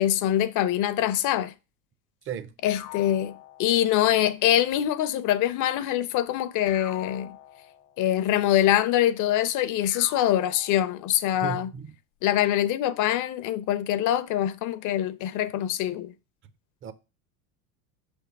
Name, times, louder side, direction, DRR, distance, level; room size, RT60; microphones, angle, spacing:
voice 1, 0.0-1.5 2.6-3.3 3.6-7.4 8.0-11.7 12.2-16.1, left 12 dB, 45° left, 0.6 m, -24 dB
sound 1, 2.6-4.3 6.7-8.2 9.8-11.3, left 12 dB, 90° left, 1.0 m, -44 dB
voice 2, 11.4-11.9 16.8-16.9, right 7 dB, 30° right, 0.6 m, -34 dB
5.7 x 3.5 x 5.8 m
supercardioid pair, 115°, 42 cm